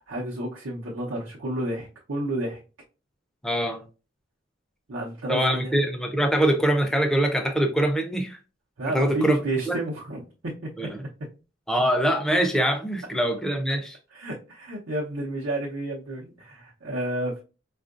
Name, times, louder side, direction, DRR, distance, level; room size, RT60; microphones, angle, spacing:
voice 1, 0.1-2.6 4.9-5.8 8.8-10.9 14.1-17.4, right 1 dB, 80° right, 0.8 m, -31 dB
voice 2, 3.4-3.8 5.3-8.4 8.9-9.4 9.7-9.8 10.8-11.0 11.7-14.0, right 1 dB, 5° left, 0.5 m, -23 dB
4.4 x 2.4 x 2.5 m
head